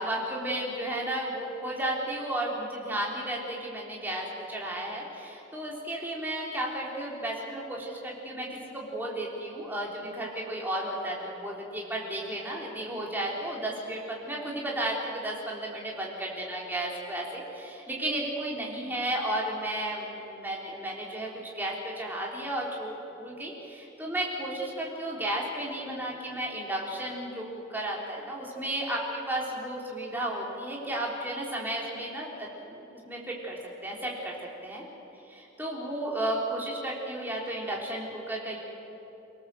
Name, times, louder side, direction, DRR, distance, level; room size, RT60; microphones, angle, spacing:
voice 1, 0.0-21.3 21.5-34.4 34.6-34.8 35.3-38.6, right 1 dB, 10° right, -3 dB, 3.8 m, -33 dB
25.5 x 18.0 x 7.7 m, 3.0 s
head